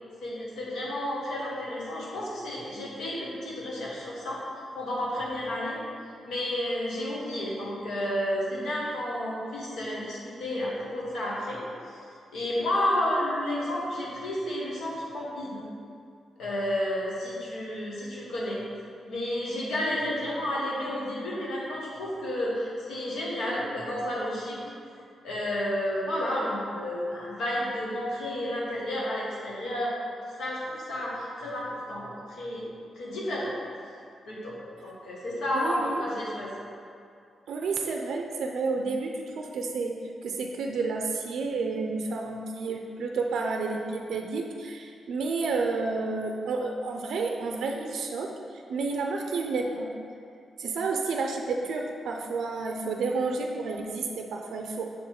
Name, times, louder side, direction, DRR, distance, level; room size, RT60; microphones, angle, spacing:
voice 1, 0.2-4.4 4.7-5.8 6.2-11.6 12.3-15.6 16.4-18.6 19.1-24.6 25.2-29.9 30.4-32.6 32.9-33.5 34.3-34.6 34.8-36.5, left 1 dB, 85° left, -5 dB, 1.5 m, -31 dB
voice 2, 35.5-36.0 37.5-49.9 50.6-54.9, right 4 dB, 75° right, 2 dB, 0.4 m, -30 dB
6.6 x 3.8 x 4.3 m, 2.3 s
wide cardioid pair, 145°, 0 cm